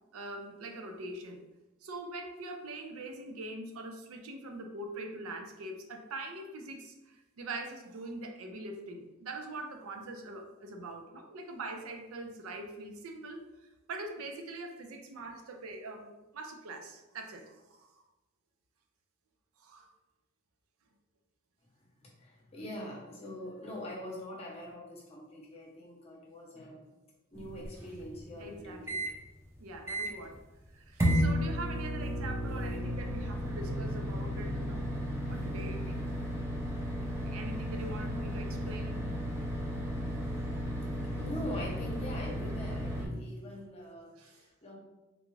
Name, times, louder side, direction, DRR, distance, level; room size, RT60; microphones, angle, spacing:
voice 1, 0.1-1.4 1.8-13.4 13.9-18.0 19.6-19.9 28.4-29.1 29.6-30.4 30.7-34.9 35.3-36.1 37.2-39.2 44.2-44.4, right 2 dB, 80° right, 4 dB, 0.5 m, -43 dB
voice 2, 22.0-26.9 27.3-28.9 37.9-38.6 40.4-44.8, left 1 dB, 30° left, -2 dB, 0.7 m, -44 dB
sound 1, 27.4-29.1 29.6-29.7 29.9-30.3 31.0-43.1, equal, 15° right, 0.5 m, -34 dB
3.7 x 2.3 x 3.1 m, 1.0 s
head